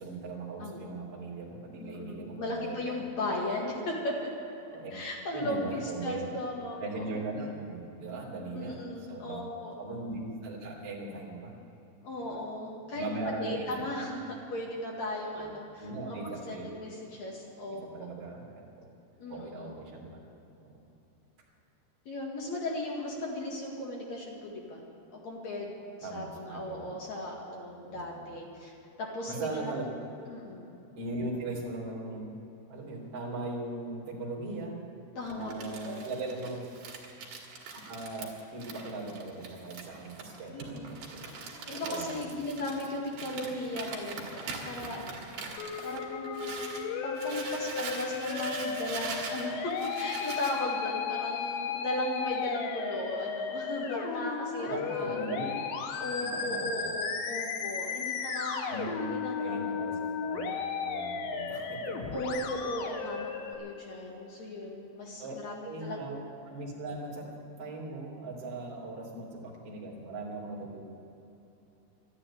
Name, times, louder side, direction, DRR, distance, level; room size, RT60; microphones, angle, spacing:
voice 1, 0.0-3.0 4.7-4.9 5.3-6.2 6.8-11.5 12.2-12.4 12.9-13.9 15.1-15.5 15.8-16.7 17.9-18.5 18.8-18.9 19.3-20.2 20.6-20.7 26.0-26.9 27.9-28.3 29.3-29.8 31.0-32.3 32.7-34.8 35.3-36.7 37.7-41.3 41.7-42.3 54.6-55.6 56.4-56.8 57.8-58.2 58.7-62.3 65.2-65.3 65.6-67.3 67.6-70.8, right 2 dB, 35° right, -3 dB, 3.6 m, -39 dB
voice 2, 1.8-4.3 4.9-7.0 8.5-9.8 12.0-14.2 14.5-18.1 19.2-19.8 22.1-24.8 25.2-28.7 29.0-29.6 30.3-30.7 35.2-36.1 40.5-40.9 41.6-45.2 45.8-55.2 56.0-59.7 62.1-66.1, left 1 dB, 50° left, -2 dB, 2.6 m, -37 dB
Crumpling crinkling, 35.2-46.8 47.1-50.6, right 4 dB, 60° right, 3.7 m, -42 dB
Musical instrument, 45.6-63.5, left 6 dB, 85° left, 3.5 m, -35 dB
12.5 x 11.5 x 9.8 m, 2.9 s
omnidirectional pair, 5.0 m